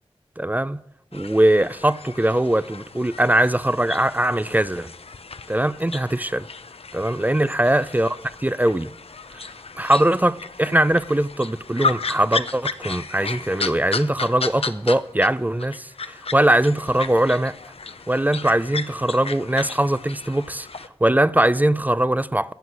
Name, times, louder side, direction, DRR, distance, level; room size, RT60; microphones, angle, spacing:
voice 1, 0.4-0.8 1.1-4.9 5.5-6.5 6.9-8.9 9.8-17.5 18.1-20.7 21.0-22.5, right 1 dB, 15° right, 0.4 m, -21 dB
sound 1, 1.1-15.3 15.6-20.9, left 4 dB, 70° left, 0.6 m, -34 dB
15.0 x 7.8 x 6.1 m
wide cardioid pair, 55°, 11 cm